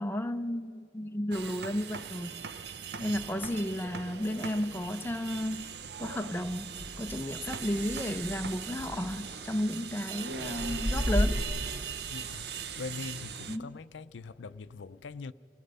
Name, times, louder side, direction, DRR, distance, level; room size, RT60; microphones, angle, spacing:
voice 1, 0.0-2.4 3.0-5.7 6.0-11.5 13.5-13.7, left 1 dB, 10° left, 0.4 m, -33 dB
sound 1, 1.3-13.6, right 7 dB, 65° right, 0.7 m, -40 dB
sound 2, 3.8-4.8 5.1-5.4 5.7-5.9 6.3-11.4, equal, 40° right, 3.4 m, -36 dB
voice 2, 12.1-15.3, left 4 dB, 85° left, 0.5 m, -42 dB
28.0 x 19.0 x 5.5 m
head